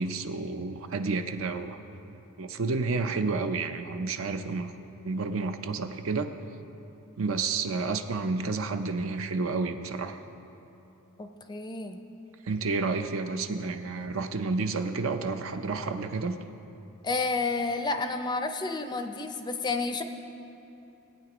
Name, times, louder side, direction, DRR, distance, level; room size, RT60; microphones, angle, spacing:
voice 1, 0.0-1.8 2.4-4.7 5.0-6.3 7.2-10.2 12.5-16.4, right 4 dB, 65° right, 8 dB, 0.5 m, -30 dB
voice 2, 11.2-12.0 17.0-20.0, left 3 dB, 20° left, 7 dB, 0.4 m, -30 dB
18.5 x 9.0 x 3.0 m, 2.9 s
head